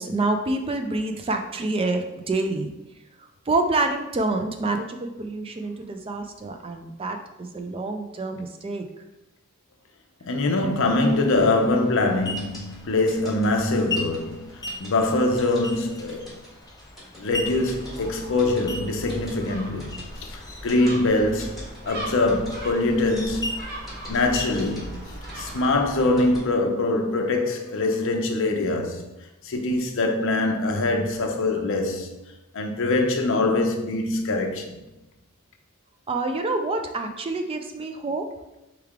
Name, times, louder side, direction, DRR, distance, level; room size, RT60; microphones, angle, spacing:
voice 1, 0.0-2.7 3.5-8.8 10.6-10.7 36.1-38.2, right 2 dB, 25° right, 0.4 m, -27 dB
voice 2, 10.2-16.3 17.2-23.7 24.1-24.9 25.3-29.0 29.4-32.1 32.5-34.8, left 2 dB, 65° left, 0.7 m, -23 dB
sound 1, 10.7-25.6, left 2 dB, 15° left, 0.6 m, -38 dB
sound 2, 12.4-26.4, left 1 dB, ahead, 1.6 m, -45 dB
Gull seagull, 17.3-26.4, right 1 dB, 45° right, 1.1 m, -40 dB
4.5 x 3.3 x 3.6 m
head